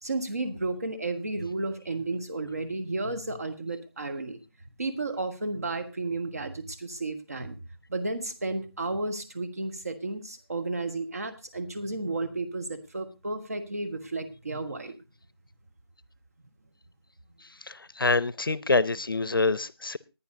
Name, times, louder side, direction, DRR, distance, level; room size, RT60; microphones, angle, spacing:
voice 1, 0.0-4.4 4.8-7.6 7.9-15.0, right 2 dB, 35° right, 1.4 m, -33 dB
voice 2, 17.4-20.0, left 3 dB, 60° left, 0.8 m, -26 dB
19.0 x 10.0 x 2.7 m
figure-of-eight pair, 175°, 13 cm